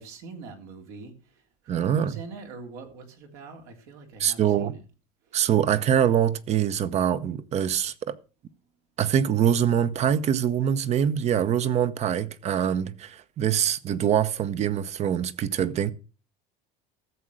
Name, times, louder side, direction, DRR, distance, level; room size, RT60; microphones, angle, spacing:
voice 1, 0.0-4.8 5.2-5.5, right 4 dB, 75° right, 3.4 m, -44 dB
voice 2, 1.7-2.1 4.2-4.7 5.3-8.1 9.0-15.9, right 9 dB, 40° right, 0.9 m, -24 dB
14.0 x 7.6 x 6.3 m
cardioid pair, 125°, 17 cm